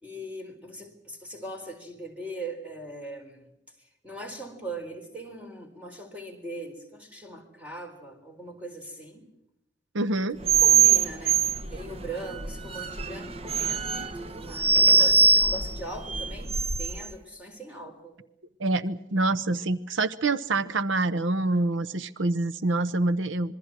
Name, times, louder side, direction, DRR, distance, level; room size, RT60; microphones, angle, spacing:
voice 1, 0.0-3.5 3.8-9.2 10.6-14.7 15.0-16.5 16.8-18.2, right 1 dB, 5° right, 3 dB, 4.2 m, -40 dB
voice 2, 9.9-10.4 18.6-23.5, right 2 dB, 85° right, 13 dB, 0.9 m, -26 dB
sound 1, 10.4-17.1, right 5 dB, 30° right, 1.0 m, -23 dB
26.5 x 22.5 x 6.2 m, 0.82 s
head